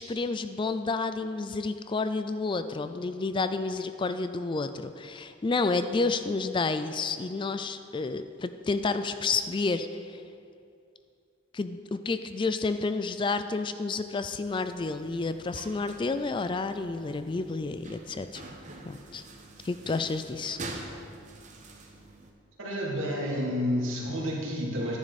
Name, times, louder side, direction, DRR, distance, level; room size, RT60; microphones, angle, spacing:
voice 1, 0.0-10.2 11.5-18.5 18.9-19.2 19.6-20.6, left 3 dB, 25° left, 10 dB, 0.3 m, -30 dB
sound 1, 14.4-22.3, right 2 dB, 40° right, 1.0 m, -45 dB
voice 2, 22.6-25.0, equal, 85° right, -4 dB, 2.7 m, -30 dB
11.0 x 9.9 x 4.1 m, 2.5 s
head